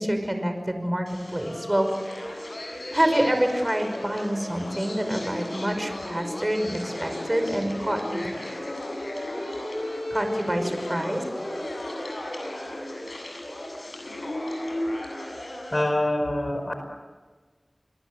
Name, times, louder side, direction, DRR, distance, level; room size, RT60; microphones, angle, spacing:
voice 1, 0.0-1.9 2.6-8.3 10.1-11.2, right 1 dB, 25° right, 6 dB, 5.5 m, -27 dB
sound 1, 1.1-15.8, left 1 dB, 75° left, 8.0 m, -34 dB
voice 2, 15.7-16.8, left 1 dB, 50° left, 6 dB, 4.9 m, -25 dB
30.0 x 22.0 x 8.0 m, 1.4 s
wide cardioid pair, 40°, 0 cm